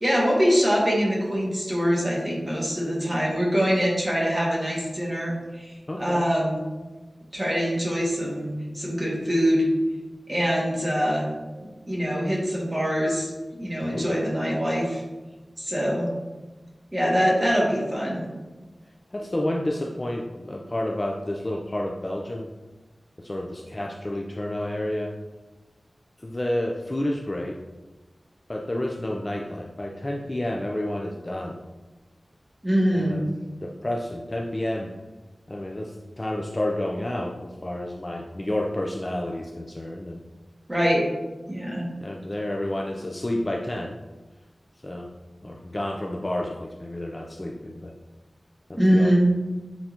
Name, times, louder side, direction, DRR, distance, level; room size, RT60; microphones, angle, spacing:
voice 1, 0.0-6.7 7.3-9.7 10.3-11.3 11.9-15.0 15.6-16.1 16.9-18.2 32.6-33.2 40.7-41.1 41.5-41.9 48.7-49.3, equal, 15° right, -4 dB, 2.0 m, -24 dB
voice 2, 5.9-6.3 13.8-14.2 19.1-22.5 23.2-25.1 26.2-27.6 28.5-31.6 32.9-33.2 33.6-34.9 35.5-40.2 42.0-44.0 44.8-45.1 45.4-47.9 48.7-49.1, left 1 dB, 30° left, 0 dB, 0.5 m, -30 dB
8.9 x 3.9 x 2.9 m, 1.2 s
wide cardioid pair, 70°, 0 cm